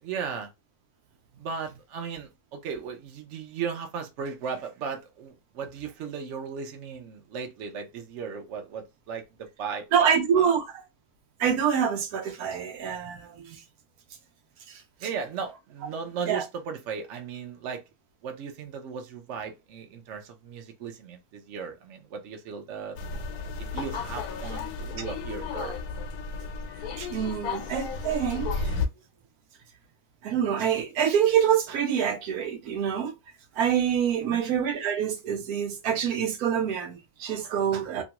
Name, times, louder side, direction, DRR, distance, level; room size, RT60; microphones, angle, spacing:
voice 1, 0.0-0.5 1.4-9.9 10.4-10.6 15.0-17.8 18.2-23.0 23.6-25.8 34.2-34.4, right 6 dB, 60° right, 0.9 m, -36 dB
voice 2, 9.9-10.8 11.4-13.6 14.7-14.8 16.3-16.4 27.0-28.7 30.2-33.1 33.6-38.0, right 8 dB, 85° right, 1.1 m, -26 dB
sound 1, 23.0-28.9, left 4 dB, 85° left, 1.1 m, -33 dB
3.0 x 2.3 x 2.9 m
omnidirectional pair, 1.6 m